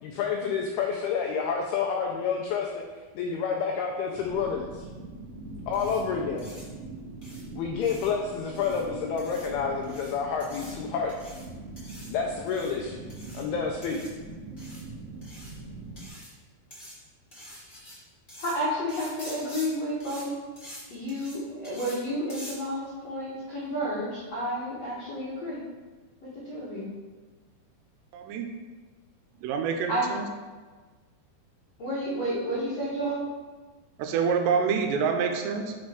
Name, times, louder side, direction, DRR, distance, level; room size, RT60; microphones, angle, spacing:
voice 1, 0.0-2.8 3.2-4.9 5.7-6.5 7.5-11.1 12.1-13.0 13.3-14.0, left 6 dB, 90° left, 1 dB, 2.2 m, -29 dB
sound 1, 4.1-16.1, right 2 dB, 60° right, 1.8 m, -42 dB
sound 2, 5.7-6.0 6.4-6.6 7.2-7.4 7.8-8.1 8.5-8.8 9.2-9.5 9.8-10.1 10.4-10.7 11.1-11.5 11.8-12.1 12.5-12.7 13.1-13.4 13.8-14.1 14.6-14.8 15.2-15.5 16.0-16.3 16.7-16.9 17.3-17.9 18.3-18.5 18.9-19.7 20.0-20.2 20.6-20.8 21.1-21.4 21.6-22.0 22.3-22.5, equal, 40° left, 0.7 m, -45 dB
voice 2, 18.4-20.3 20.9-25.6 26.2-26.9 29.9-30.1 31.8-33.2, equal, 70° left, -10 dB, 1.5 m, -31 dB
voice 3, 28.1-28.5 29.4-30.2 34.0-35.7, right 6 dB, 80° right, 4 dB, 2.8 m, -26 dB
6.5 x 4.3 x 4.8 m, 1.4 s
omnidirectional pair, 5.1 m